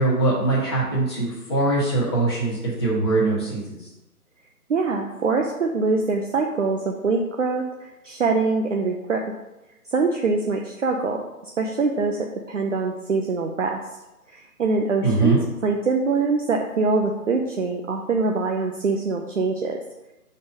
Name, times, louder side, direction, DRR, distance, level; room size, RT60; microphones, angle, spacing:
voice 1, 0.0-3.6 15.0-15.4, right 2 dB, 15° left, -8 dB, 1.3 m, -22 dB
voice 2, 4.7-9.2 9.9-11.2 11.6-12.2 12.5-13.8 14.3-15.4 15.6-19.8, right 4 dB, 55° right, 1 dB, 0.6 m, -24 dB
5.2 x 4.2 x 5.3 m, 0.97 s
hypercardioid pair, 170°, 46 cm